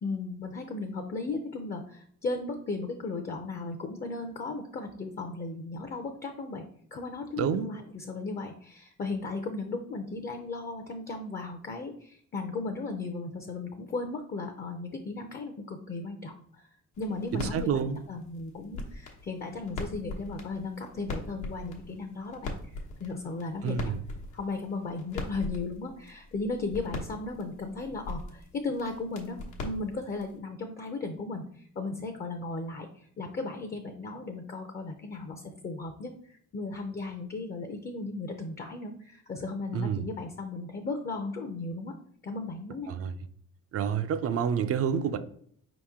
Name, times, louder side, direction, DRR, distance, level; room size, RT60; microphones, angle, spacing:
voice 1, 0.0-6.6 6.9-16.6 17.0-23.9 24.3-32.9 33.2-41.9 42.2-42.9, left 3 dB, 35° left, 5 dB, 0.6 m, -36 dB
voice 2, 7.4-7.7 17.3-18.0 23.6-24.0 39.7-40.0 42.9-43.1 43.7-45.2, right 7 dB, 50° right, 11 dB, 0.5 m, -28 dB
sound 1, 16.9-30.4, left 2 dB, 85° left, 1.0 m, -41 dB
4.7 x 3.0 x 3.6 m, 0.62 s
cardioid pair, 90°, 30 cm